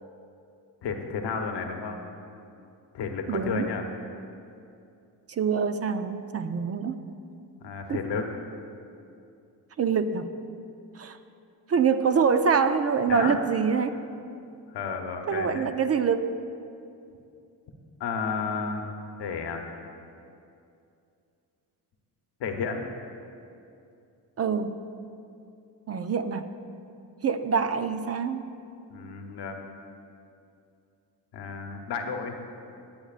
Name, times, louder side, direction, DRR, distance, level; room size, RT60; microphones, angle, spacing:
voice 1, 0.8-2.0 2.9-3.8 7.6-8.3 13.1-13.4 14.7-15.7 18.0-19.6 22.4-22.8 28.9-29.6 31.3-32.3, left 5 dB, 70° left, 4 dB, 1.0 m, -32 dB
voice 2, 3.3-3.7 5.3-7.0 7.9-8.1 9.8-10.3 10.9-11.2 11.7-14.0 15.3-16.4 24.4-24.8 25.9-26.5 27.2-28.5, right 6 dB, 35° right, 9 dB, 0.5 m, -25 dB
17.5 x 7.8 x 2.4 m, 2.6 s
cardioid pair, 80°, 42 cm